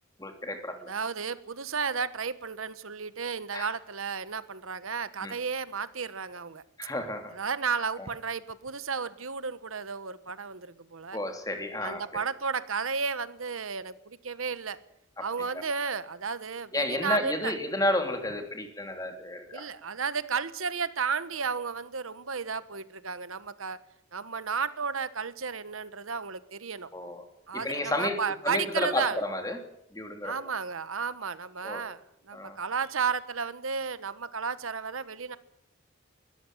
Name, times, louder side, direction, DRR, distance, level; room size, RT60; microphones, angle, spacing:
voice 1, 0.2-0.9 3.5-3.7 5.2-5.3 6.8-7.3 8.0-8.1 11.1-12.2 15.2-15.6 16.7-19.7 26.9-27.2 27.5-28.2 28.4-29.6 29.9-30.4 31.6-31.8 32.3-32.6, left 1 dB, 15° left, 5 dB, 3.1 m, -32 dB
voice 2, 0.9-6.6 7.4-11.2 11.8-14.8 15.2-17.5 19.5-23.8 24.1-26.9 27.5-29.2 30.2-32.0 32.3-35.4, right 5 dB, 85° right, 14 dB, 1.2 m, -33 dB
21.5 x 14.0 x 9.4 m, 0.79 s
head